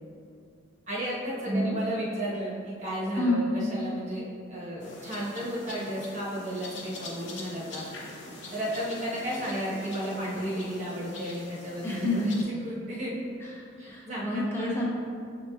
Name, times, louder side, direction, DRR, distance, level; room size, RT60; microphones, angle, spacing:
voice 1, 0.9-4.2 4.5-7.8 8.5-12.3 12.6-13.1 13.8-14.7, equal, 35° right, -7 dB, 1.0 m, -33 dB
voice 2, 1.5-1.8 3.2-3.5 11.8-12.3 13.4-14.8, left 1 dB, 10° left, -5 dB, 0.7 m, -29 dB
sound 1, 4.8-12.4, left 2 dB, 60° left, 0.6 m, -44 dB
7.1 x 3.0 x 2.3 m, 2.3 s
head